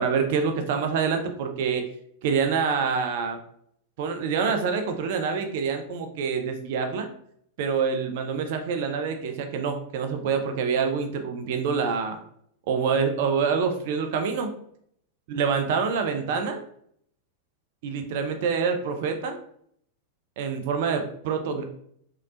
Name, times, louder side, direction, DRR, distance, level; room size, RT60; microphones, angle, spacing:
voice 1, 0.0-1.9 2.2-3.4 4.0-7.1 7.6-12.2 12.7-14.5 15.3-16.6 17.8-19.4 20.4-21.6, right 6 dB, 50° right, 5 dB, 0.3 m, -26 dB
3.1 x 2.7 x 2.4 m, 0.68 s
figure-of-eight pair, 90°, 0 cm